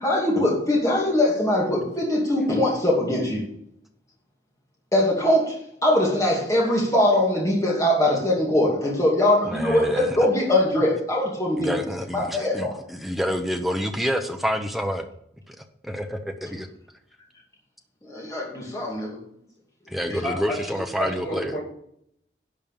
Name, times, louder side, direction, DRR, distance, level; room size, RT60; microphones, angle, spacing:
voice 1, 0.0-3.4 4.9-11.8 12.1-12.7 18.1-19.2, left 1 dB, 20° left, -4 dB, 2.4 m, -22 dB
voice 2, 9.4-10.3 11.6-15.1 15.5-16.7 19.9-21.6, equal, ahead, 5 dB, 0.8 m, -28 dB
voice 3, 20.2-21.6, left 1 dB, 65° left, -4 dB, 5.4 m, -31 dB
11.0 x 5.3 x 7.2 m, 0.71 s
head